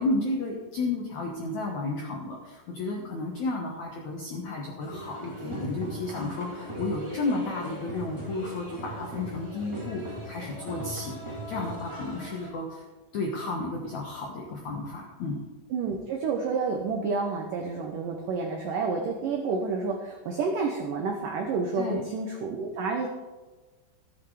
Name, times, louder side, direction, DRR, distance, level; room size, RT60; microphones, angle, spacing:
voice 1, 0.0-12.8 13.1-15.4 21.8-22.0, left 2 dB, 75° left, -1 dB, 1.7 m, -32 dB
sound 1, 4.8-12.5, right 1 dB, 25° right, 0.6 m, -39 dB
voice 2, 15.7-23.1, right 4 dB, 85° right, 2 dB, 1.9 m, -29 dB
14.0 x 8.4 x 4.8 m, 1.2 s
omnidirectional pair, 5.3 m